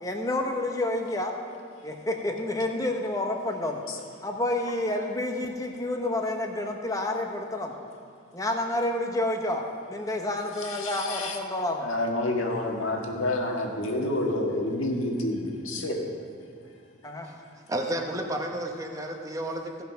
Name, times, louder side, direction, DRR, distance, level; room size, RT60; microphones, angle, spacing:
voice 1, 0.0-1.3 1.8-3.8 4.2-7.7 8.3-11.9 17.0-17.3, left 1 dB, 15° left, 3 dB, 0.9 m, -29 dB
voice 2, 10.6-11.4 11.8-16.0, left 1 dB, 85° left, 0 dB, 1.6 m, -29 dB
voice 3, 17.7-19.8, right 1 dB, 15° right, 2 dB, 0.8 m, -32 dB
15.5 x 5.8 x 5.7 m, 2.4 s
head